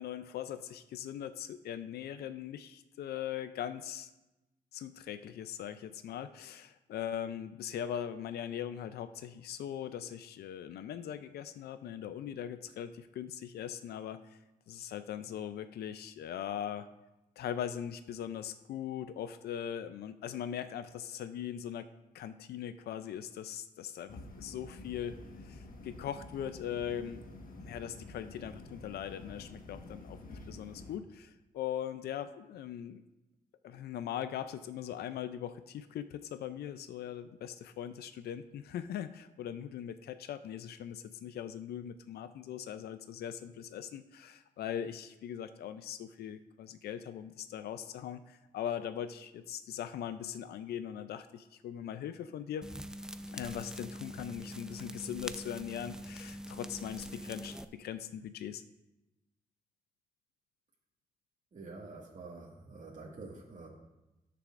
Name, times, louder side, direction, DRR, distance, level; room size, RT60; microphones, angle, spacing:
voice 1, 0.0-4.1 4.7-14.4 14.7-16.9 17.4-21.9 22.1-27.2 27.6-33.0 33.6-52.6 53.3-58.6, left 9 dB, 85° left, 11 dB, 0.4 m, -40 dB
sound 1, 24.1-31.0, left 2 dB, 60° left, 1.4 m, -49 dB
sound 2, 52.6-57.6, equal, 5° right, 0.6 m, -44 dB
voice 2, 61.5-63.7, right 3 dB, 50° right, -4 dB, 1.8 m, -47 dB
16.0 x 6.7 x 2.5 m, 1.0 s
supercardioid pair, 55°, 16 cm